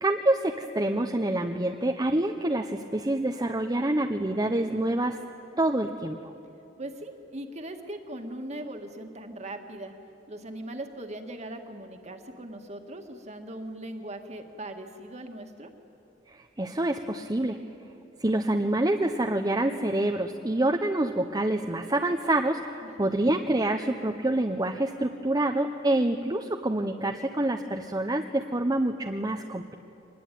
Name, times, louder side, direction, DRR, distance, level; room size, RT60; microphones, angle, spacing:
voice 1, 0.0-5.2 5.6-6.2 16.3-17.6 18.2-29.7, right 1 dB, 20° right, 3 dB, 0.8 m, -27 dB
voice 2, 6.8-9.9 10.3-15.7 22.8-23.1, right 1 dB, 40° right, 5 dB, 1.9 m, -39 dB
24.5 x 20.5 x 9.3 m, 2.8 s
head